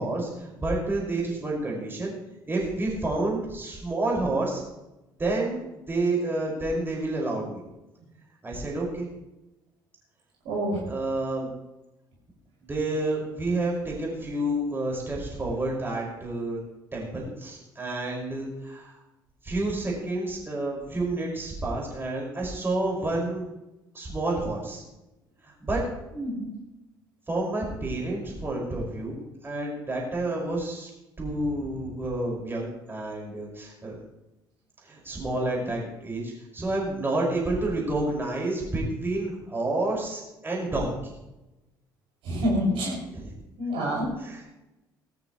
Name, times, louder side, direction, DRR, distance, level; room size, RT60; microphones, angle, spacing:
voice 1, 0.0-2.1 2.5-4.6 5.2-7.6 8.4-9.1 10.9-11.5 12.6-16.6 16.9-19.0 19.4-23.4 23.9-24.8 25.4-25.8 27.3-29.2 29.4-30.9 31.2-34.0 34.8-41.1 43.1-43.3 44.2-44.5, right 2 dB, 20° right, -2 dB, 5.9 m, -29 dB
voice 2, 10.4-10.8 26.1-26.5 42.2-43.0 43.6-44.1, equal, 55° right, -3 dB, 6.3 m, -27 dB
20.0 x 14.5 x 3.2 m, 0.98 s
figure-of-eight pair, 55°, 11 cm